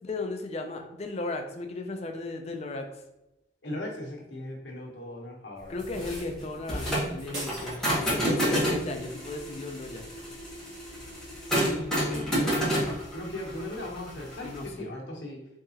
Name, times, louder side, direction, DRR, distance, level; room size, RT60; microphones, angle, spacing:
voice 1, 0.0-2.9 5.7-10.0 14.4-14.9, left 2 dB, 35° left, 5 dB, 0.4 m, -35 dB
voice 2, 3.6-5.8 11.4-15.4, left 1 dB, 75° left, -1 dB, 0.9 m, -38 dB
sound 1, 5.8-14.7, equal, 5° left, 1.0 m, -30 dB
sound 2, 7.3-8.6, right 1 dB, 75° right, 1.4 m, -41 dB
3.5 x 2.8 x 2.8 m, 0.91 s
head